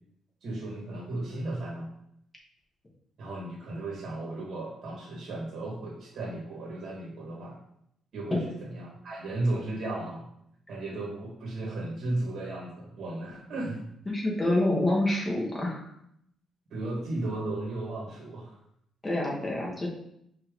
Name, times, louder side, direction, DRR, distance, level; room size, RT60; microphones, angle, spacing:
voice 1, 0.4-1.9 3.2-7.6 8.1-10.3 10.7-13.8 16.7-18.5, right 2 dB, 65° right, -4 dB, 1.5 m, -35 dB
voice 2, 14.1-15.9 19.0-19.9, left 1 dB, 20° left, -3 dB, 1.3 m, -27 dB
5.3 x 2.8 x 3.6 m, 0.74 s
cardioid pair, 90°, 0 cm